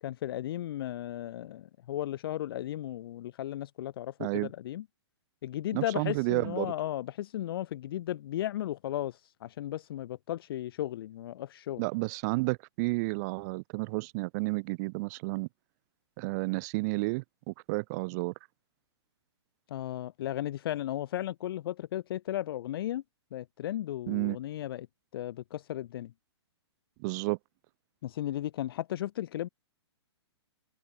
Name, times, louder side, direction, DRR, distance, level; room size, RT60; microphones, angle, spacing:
voice 1, 0.0-4.8 5.4-11.8 19.7-23.0 23.3-24.9 25.1-26.1 28.0-29.5, left 13 dB, 55° left, 0.6 m, -35 dB
voice 2, 5.7-6.7 11.8-15.5 16.2-18.3 24.1-24.4 27.0-27.4, right 26 dB, 40° right, 1.4 m, -31 dB
hypercardioid pair, 135°, 15 cm